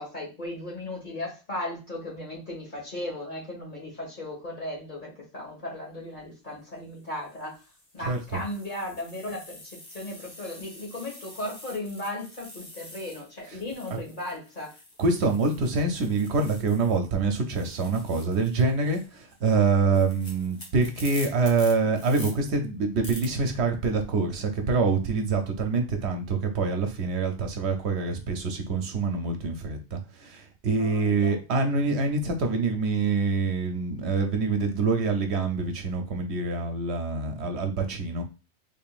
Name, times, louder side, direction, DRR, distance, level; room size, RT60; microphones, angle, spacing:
voice 1, 0.0-7.6 7.9-14.8 30.8-31.4, left 1 dB, 45° left, -3 dB, 1.8 m, -36 dB
sound 1, 6.0-6.2 7.0-17.1 17.4-22.3 23.0-23.3, left 1 dB, 25° left, 1.0 m, -47 dB
voice 2, 8.0-8.4 13.4-13.6 13.9-14.0 15.0-38.2, right 4 dB, 75° right, 5 dB, 0.9 m, -26 dB
3.6 x 3.6 x 2.4 m, 0.31 s
omnidirectional pair, 1.2 m